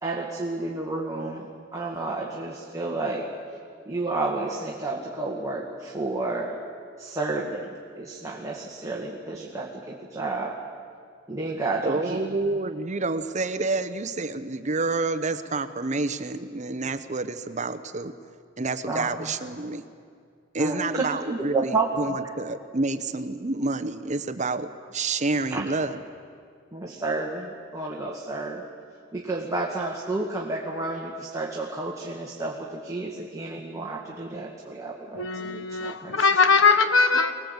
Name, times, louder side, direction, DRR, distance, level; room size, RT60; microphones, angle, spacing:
voice 1, 0.0-3.3 3.9-6.6 7.0-7.7 8.0-10.6 11.3-12.2 18.9-19.3 20.6-22.2 25.5-25.6 26.7-28.6 29.1-36.3, right 2 dB, 15° right, -2 dB, 2.0 m, -31 dB
voice 2, 11.8-18.1 18.6-19.8 20.5-26.0, right 3 dB, 40° right, 10 dB, 0.9 m, -28 dB
voice 3, 35.1-37.3, left 4 dB, 85° left, 9 dB, 1.2 m, -21 dB
24.5 x 19.5 x 8.1 m, 2.2 s
head